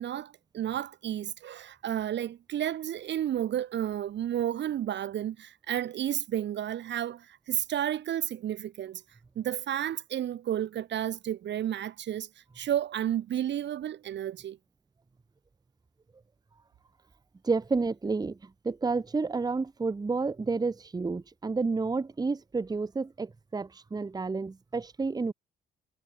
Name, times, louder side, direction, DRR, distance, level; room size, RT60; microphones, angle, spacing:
voice 1, 0.0-9.0 9.3-12.3 12.6-14.6, right 11 dB, 65° right, 1.2 m, -32 dB
voice 2, 17.4-25.3, right 4 dB, 20° right, 0.9 m, -30 dB
cardioid pair, 90°, 20 cm